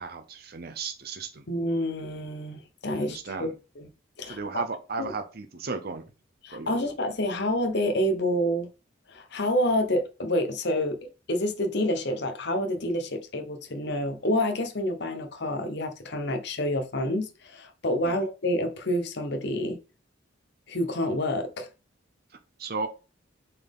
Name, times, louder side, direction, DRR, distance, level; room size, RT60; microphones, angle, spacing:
voice 1, 0.0-1.4 3.0-3.5 4.3-6.0 6.5-6.8 18.0-18.2 22.6-22.9, right 4 dB, 50° right, 0.7 m, -35 dB
voice 2, 1.5-3.5 3.8-3.9 4.2-4.7 5.0-5.1 6.4-8.7 9.1-11.0 11.3-19.8 20.7-21.7, left 1 dB, 60° left, 1.0 m, -28 dB
6.9 x 4.2 x 3.6 m
head